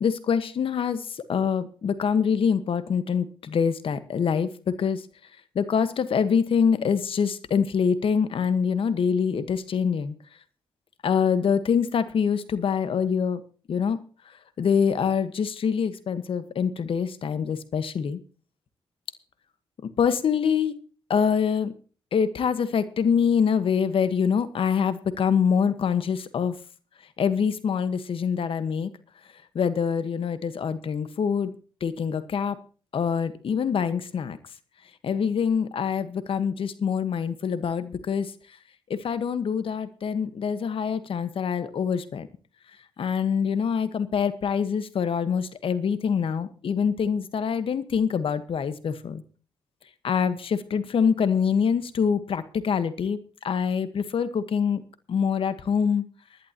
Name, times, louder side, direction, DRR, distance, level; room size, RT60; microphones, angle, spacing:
voice 1, 0.0-5.0 5.5-10.1 11.0-13.4 13.7-14.0 14.6-18.2 19.8-20.7 21.1-21.7 22.1-26.5 27.2-28.9 29.5-31.5 31.8-32.6 32.9-34.4 35.0-38.3 38.9-42.3 43.0-49.2 50.0-53.2 53.4-54.8 55.1-56.0, left 6 dB, 65° left, 12 dB, 1.3 m, -25 dB
20.5 x 11.0 x 2.9 m, 0.39 s
cardioid pair, 60°, 10 cm